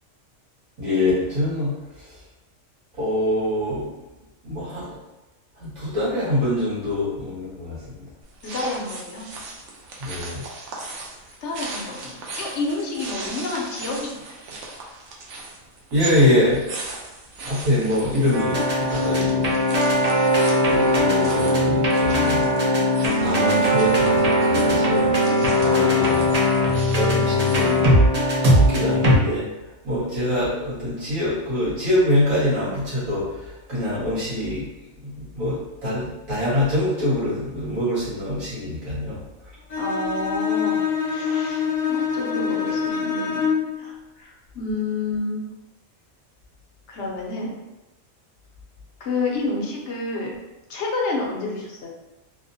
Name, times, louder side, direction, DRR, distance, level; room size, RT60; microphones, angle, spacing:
voice 1, 0.8-2.1 3.0-3.8 4.4-4.9 5.6-8.1 10.0-10.4 15.9-16.6 17.4-19.6 20.7-22.5 23.2-25.1 25.6-26.3 26.6-28.0 28.5-29.5 29.8-34.6 35.0-39.2, left 1 dB, 90° right, -11 dB, 2.2 m, -24 dB
sound 1, 8.2-27.9, right 3 dB, 70° right, 0.9 m, -38 dB
voice 2, 8.4-9.3 11.4-14.3 25.6-26.2 39.8-41.6 41.9-43.4 43.8-45.4 46.9-47.5 49.0-50.3 50.7-51.9, left 3 dB, 65° left, -2 dB, 0.9 m, -29 dB
sound 2, 18.3-29.2, left 1 dB, 45° right, 0.5 m, -19 dB
Bowed string instrument, 39.7-43.8, left 6 dB, 40° left, 0.5 m, -25 dB
4.1 x 2.1 x 2.6 m, 1.0 s
omnidirectional pair, 1.4 m